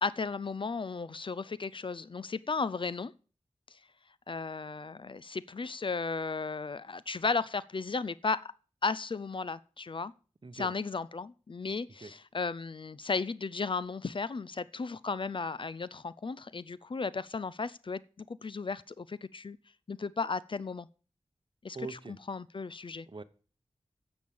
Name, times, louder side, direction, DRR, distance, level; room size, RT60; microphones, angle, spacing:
voice 1, 0.0-3.1 3.7-3.8 4.3-8.5 8.8-10.1 10.5-19.6 19.9-20.9 21.6-22.0 22.3-23.1, left 4 dB, 45° left, 0.4 m, -35 dB
voice 2, 21.7-22.2 23.1-23.2, right 4 dB, 45° right, 1.0 m, -41 dB
9.3 x 7.2 x 8.6 m
wide cardioid pair, 85°, 12 cm